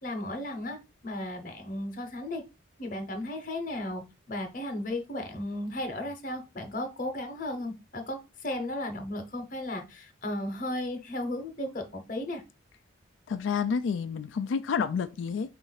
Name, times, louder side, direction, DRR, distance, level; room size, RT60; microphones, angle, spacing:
voice 1, 0.0-2.4 2.8-4.0 4.3-12.4, left 1 dB, 40° left, 0.8 m, -35 dB
voice 2, 13.3-15.6, left 6 dB, 70° left, 0.3 m, -29 dB
4.0 x 2.5 x 3.9 m
head